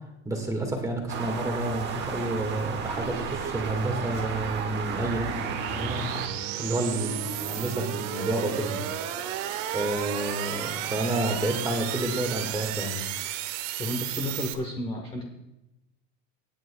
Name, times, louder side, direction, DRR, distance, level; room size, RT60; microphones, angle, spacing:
voice 1, 0.2-6.1 6.6-8.8 9.7-13.0, right 1 dB, 10° right, 2 dB, 1.6 m, -30 dB
sound 1, 1.1-6.3, right 6 dB, 30° right, 1.0 m, -34 dB
sound 2, 1.7-14.5, right 11 dB, 85° right, 1.2 m, -34 dB
voice 2, 13.8-15.3, left 1 dB, 15° left, 0 dB, 1.0 m, -32 dB
24.5 x 9.3 x 2.2 m, 0.92 s
cardioid pair, 170°, 37 cm